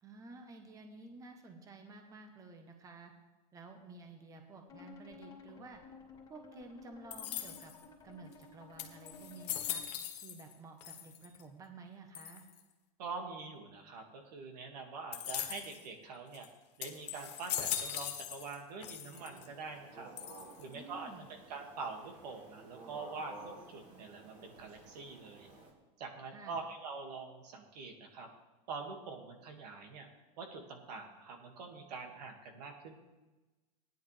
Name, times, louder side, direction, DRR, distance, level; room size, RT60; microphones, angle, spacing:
voice 1, 0.0-3.1 3.5-5.8 6.3-7.7 8.0-9.8 10.2-12.4 20.7-21.3 26.3-26.6, right 3 dB, 15° right, 5 dB, 1.1 m, -52 dB
sound 1, 4.7-9.9, left 5 dB, 15° left, 2.4 m, -55 dB
sound 2, 7.1-7.8 8.4-8.5 8.8-10.5 10.8-11.4 12.1-12.6 15.1-15.8 16.3-16.5 16.8-18.6 18.8-19.5 20.2-20.7, left 11 dB, 85° left, 1.5 m, -40 dB
voice 2, 13.0-16.5 16.8-20.1 20.6-21.1 21.5-25.5 26.0-28.3 28.7-30.1 30.4-32.9, right 4 dB, 85° right, 3 dB, 2.1 m, -45 dB
sound 3, 19.1-25.7, right 2 dB, 35° right, 2.4 m, -54 dB
16.5 x 10.5 x 3.4 m, 1.2 s
supercardioid pair, 150°, 20 cm